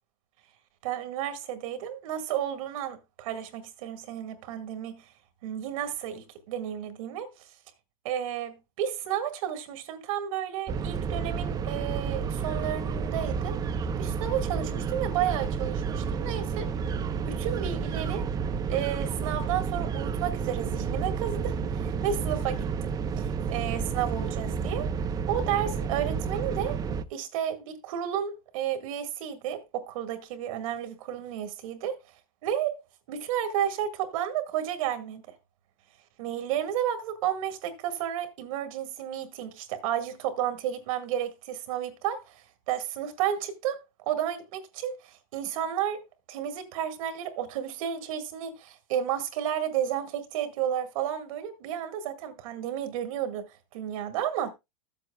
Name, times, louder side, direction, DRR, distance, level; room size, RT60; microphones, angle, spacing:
voice 1, 0.8-5.1 5.4-7.6 8.0-13.6 14.0-16.7 17.3-18.3 18.7-24.9 25.3-26.8 27.1-32.2 32.4-35.4 36.2-46.0 46.3-54.5, right 10 dB, 70° right, 1.7 m, -32 dB
sound 1, 10.7-27.0, right 6 dB, 20° right, 0.5 m, -31 dB
14.0 x 7.7 x 2.2 m
supercardioid pair, 135°, 18 cm